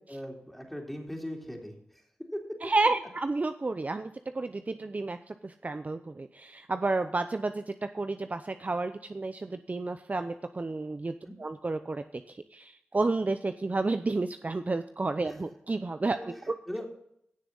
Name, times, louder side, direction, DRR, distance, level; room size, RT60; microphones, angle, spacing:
voice 1, 0.1-1.7 11.2-11.3 16.2-16.3 16.7-16.9, equal, 5° left, 1 dB, 3.3 m, -39 dB
voice 2, 2.6-16.6, right 3 dB, 35° right, 9 dB, 0.6 m, -31 dB
16.0 x 6.7 x 3.9 m, 0.74 s
cardioid pair, 45°, 4 cm